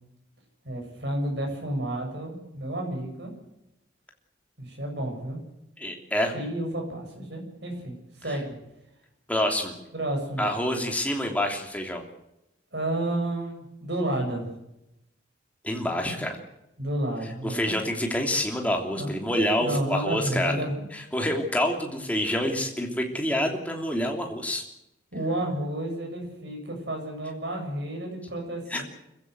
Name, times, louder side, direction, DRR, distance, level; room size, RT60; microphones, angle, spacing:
voice 1, 0.6-3.3 4.6-5.4 6.3-8.6 9.9-10.5 12.7-14.5 16.8-17.8 18.9-19.1 19.6-20.8 25.1-28.8, right 1 dB, 65° right, 1 dB, 7.3 m, -31 dB
voice 2, 5.8-6.3 9.3-9.7 10.4-12.0 15.6-16.4 17.4-20.6 20.9-24.6 28.7-28.8, left 1 dB, 10° left, 2 dB, 3.0 m, -27 dB
25.5 x 15.5 x 8.2 m, 0.88 s
head